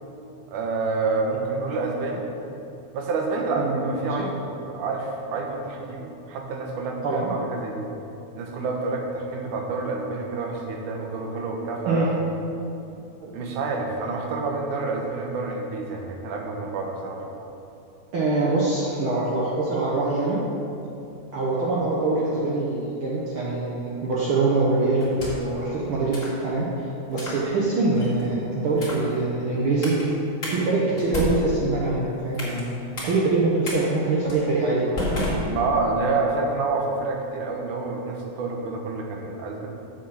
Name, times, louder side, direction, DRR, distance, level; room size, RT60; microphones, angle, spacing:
voice 1, 0.5-2.2 2.9-7.9 8.4-12.1 13.3-17.2 35.5-39.7, right 3 dB, 85° right, 1 dB, 2.6 m, -28 dB
voice 2, 3.6-4.3 7.0-7.3 11.9-12.1 13.2-13.3 18.1-20.4 21.3-29.9 30.5-32.7 33.0-34.9, right 2 dB, 60° right, -5 dB, 1.5 m, -24 dB
sound 1, 25.0-25.6 26.1-26.4 27.1-27.4 28.0-28.3 28.7-29.1 29.8-30.0 30.4-30.6 31.0-32.6 33.0-33.1 33.6-33.8 34.3-34.4 35.0-36.0, left 1 dB, 30° left, 2.3 m, -30 dB
7.2 x 6.9 x 6.9 m, 2.8 s
omnidirectional pair, 3.5 m